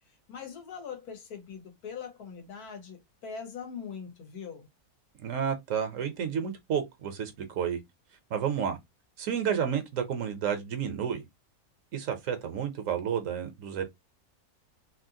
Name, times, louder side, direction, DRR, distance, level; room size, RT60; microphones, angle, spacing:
voice 1, 0.1-4.7, left 6 dB, 80° left, 1.5 m, -42 dB
voice 2, 5.2-7.8 8.3-8.8 9.2-11.2 11.9-13.8, right 8 dB, 65° right, 1.0 m, -31 dB
3.1 x 2.8 x 2.7 m
omnidirectional pair, 1.6 m